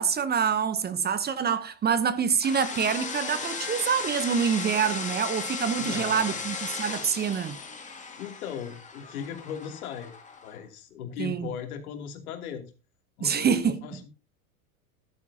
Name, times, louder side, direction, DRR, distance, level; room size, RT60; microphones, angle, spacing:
voice 1, 0.0-7.6 11.2-11.5 13.2-13.8, right 7 dB, 20° right, 0.8 m, -26 dB
sound 1, 2.4-10.5, left 5 dB, 15° left, 2.3 m, -36 dB
voice 2, 5.8-6.4 7.9-10.1 10.4-12.6 13.2-14.1, left 8 dB, 70° left, 2.8 m, -38 dB
14.0 x 11.5 x 2.8 m
hypercardioid pair, 95°, 45 cm